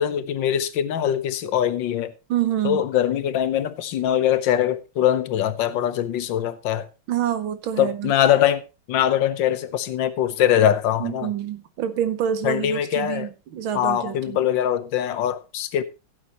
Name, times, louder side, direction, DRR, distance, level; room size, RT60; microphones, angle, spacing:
voice 1, 0.0-2.1 2.6-6.9 7.8-8.6 8.9-11.3 12.4-13.3 13.7-15.8, left 10 dB, 65° left, 1.5 m, -22 dB
voice 2, 2.3-2.8 7.1-8.1 11.0-14.4, right 10 dB, 75° right, 1.6 m, -27 dB
16.0 x 8.5 x 2.9 m
omnidirectional pair, 2.3 m